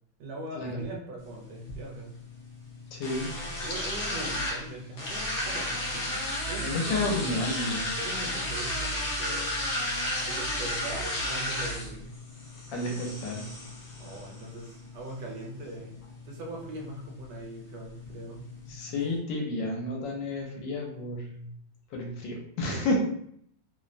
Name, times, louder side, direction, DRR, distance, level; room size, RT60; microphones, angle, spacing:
voice 1, 0.2-2.1 3.6-7.2 8.0-9.6 10.2-12.1 14.0-16.0 16.2-18.5, right 2 dB, 70° right, 0 dB, 1.1 m, -41 dB
sound 1, 1.2-19.2, left 1 dB, 65° left, 0.7 m, -34 dB
voice 2, 2.9-3.3 6.6-7.9 12.7-13.4 18.7-21.5 21.9-23.0, left 2 dB, 80° left, 0 dB, 1.3 m, -31 dB
3.2 x 2.0 x 2.4 m, 0.68 s
omnidirectional pair, 2.1 m